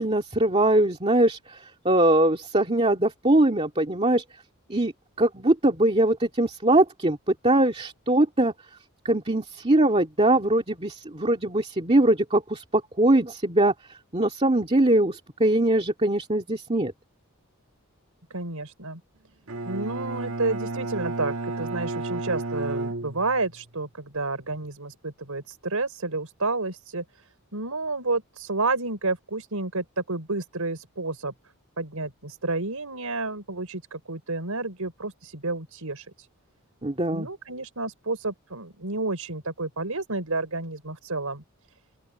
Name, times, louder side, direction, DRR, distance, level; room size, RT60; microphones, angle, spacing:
voice 1, 0.0-4.2 4.7-4.9 5.2-8.5 9.0-13.7 14.1-16.9 36.8-37.3, right 1 dB, 25° right, 2.0 m, -22 dB
voice 2, 18.3-19.0 19.6-27.0 27.5-31.3 31.8-36.3 37.1-41.4, right 3 dB, 90° right, 4.7 m, -30 dB
Bowed string instrument, 19.5-23.7, right 2 dB, 70° right, 1.7 m, -32 dB
open air
head